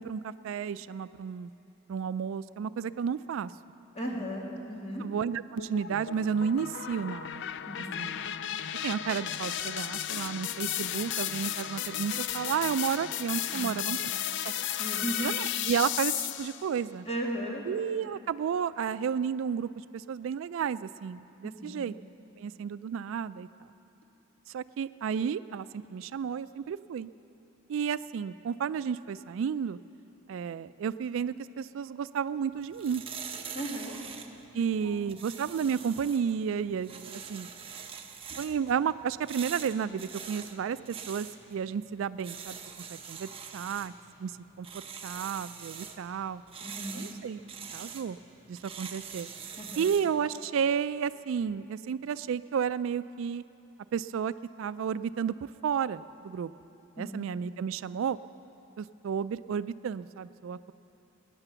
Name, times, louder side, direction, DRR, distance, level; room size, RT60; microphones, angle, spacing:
voice 1, 0.0-1.5 1.9-3.5 5.0-7.4 8.0-8.2 8.8-14.0 14.4-14.5 15.2-17.1 17.7-21.9 22.4-23.5 24.5-27.1 27.7-29.8 30.3-33.0 34.5-37.5 38.4-42.6 42.9-43.9 44.2-44.3 44.6-44.7 45.0-46.4 46.9-47.4 47.7-48.2 48.5-49.3 49.8-53.4 53.9-54.3 54.6-55.3 55.6-56.5 57.0-58.2 58.8-60.7, right 7 dB, 70° right, 15 dB, 0.3 m, -32 dB
voice 2, 3.9-5.1 7.7-8.1 13.5-13.8 14.2-15.3 17.0-17.6 21.4-21.8 33.5-34.0 34.8-35.0 46.6-47.0 49.6-49.9 57.0-57.2, right 1 dB, 30° left, -2 dB, 2.2 m, -37 dB
sound 1, 5.6-16.7, left 11 dB, 55° left, 0.4 m, -34 dB
sound 2, 32.5-50.2, right 7 dB, 25° right, 0.8 m, -44 dB
19.5 x 9.9 x 6.9 m, 2.9 s
head